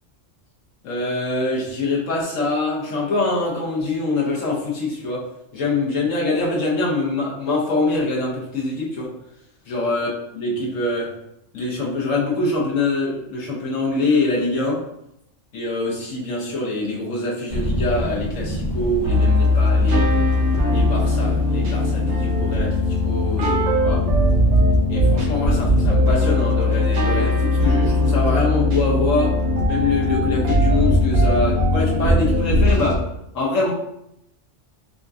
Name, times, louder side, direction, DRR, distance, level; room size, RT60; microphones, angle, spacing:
voice 1, 0.8-5.3 5.5-9.1 9.7-11.1 11.5-14.8 15.5-20.1 20.7-24.1 24.9-29.4 29.7-33.0 33.3-33.7, left 2 dB, 85° left, -4 dB, 1.4 m, -24 dB
sound 1, 17.5-25.7, equal, 65° left, 1.5 m, -31 dB
sound 2, 19.0-33.0, left 1 dB, 75° right, 1.1 m, -19 dB
5.0 x 2.6 x 2.3 m, 0.80 s
omnidirectional pair, 1.3 m